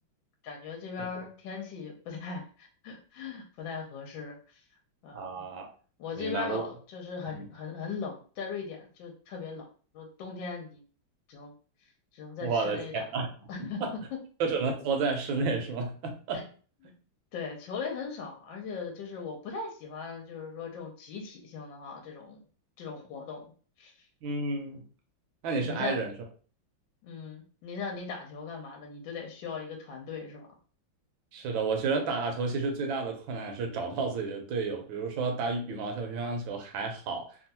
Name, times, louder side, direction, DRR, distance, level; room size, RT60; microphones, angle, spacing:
voice 1, 0.4-4.6 5.0-5.4 6.0-9.7 9.9-10.8 11.3-11.5 12.1-13.0 13.5-13.8 14.1-14.2 17.3-22.4 22.8-23.5 23.8-23.9 25.6-26.0 27.0-30.5, left 5 dB, 75° left, 1 dB, 1.4 m, -39 dB
voice 2, 5.1-5.7 6.2-6.6 7.3-7.4 12.4-13.3 13.6-13.9 14.4-16.5 24.2-24.8 25.4-26.1 31.3-37.3, right 4 dB, 85° right, 3 dB, 1.5 m, -31 dB
3.5 x 2.3 x 2.8 m, 0.40 s
omnidirectional pair, 2.1 m